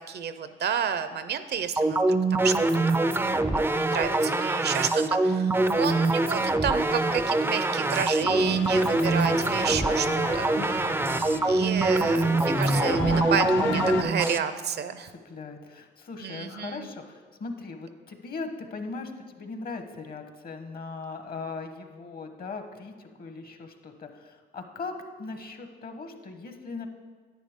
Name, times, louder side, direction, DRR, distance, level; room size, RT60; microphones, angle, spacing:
voice 1, 0.0-3.2 3.5-10.5 11.4-15.1 16.2-16.9, right 7 dB, 55° right, 11 dB, 0.6 m, -31 dB
sound 1, 1.8-14.4, right 2 dB, 10° right, 0.4 m, -24 dB
sound 2, 8.2-14.0, left 5 dB, 70° left, 0.9 m, -34 dB
voice 2, 10.6-10.9 15.2-26.9, left 4 dB, 50° left, 6 dB, 1.1 m, -39 dB
10.5 x 9.0 x 3.6 m, 1.5 s
cardioid pair, 90°, 20 cm